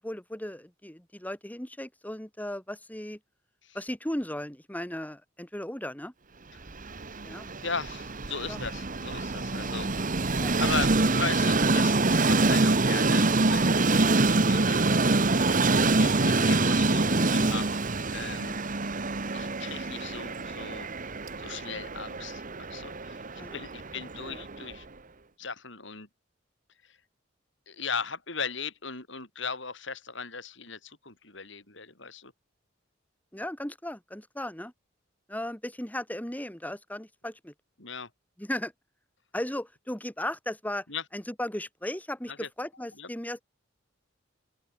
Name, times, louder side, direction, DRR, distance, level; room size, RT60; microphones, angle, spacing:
voice 1, 0.0-3.2 3.7-6.1 7.2-7.5 8.5-8.6 10.4-10.6 23.4-23.6 24.2-24.4 33.3-34.7 35.3-37.5 38.4-38.7 39.3-40.9 41.1-43.4, left 1 dB, 10° left, 2.1 m, -36 dB
Train, 6.7-24.8, right 3 dB, 45° right, 1.5 m, -26 dB
voice 2, 7.6-9.9 10.3-14.8 15.7-17.8 18.1-18.6 19.3-20.9 21.4-23.2 23.5-24.9 25.4-26.1 26.8-27.0 27.7-32.3 37.8-38.1 40.9-41.0 42.3-42.5 43.0-43.1, left 5 dB, 65° left, 7.1 m, -38 dB
open air
head